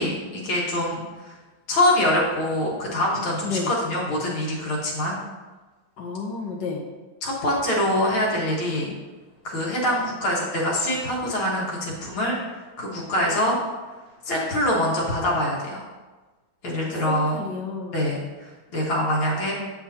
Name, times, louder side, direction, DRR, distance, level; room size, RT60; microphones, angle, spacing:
voice 1, 0.0-1.4 1.7-5.2 7.2-8.9 9.4-13.6 14.2-15.8 16.6-17.4 17.9-19.5, left 1 dB, 85° left, -4 dB, 2.4 m, -24 dB
voice 2, 3.4-3.7 6.0-6.8 16.8-18.0, left 4 dB, 65° left, 1 dB, 1.3 m, -31 dB
7.5 x 7.1 x 2.8 m, 1.3 s
omnidirectional pair, 2.2 m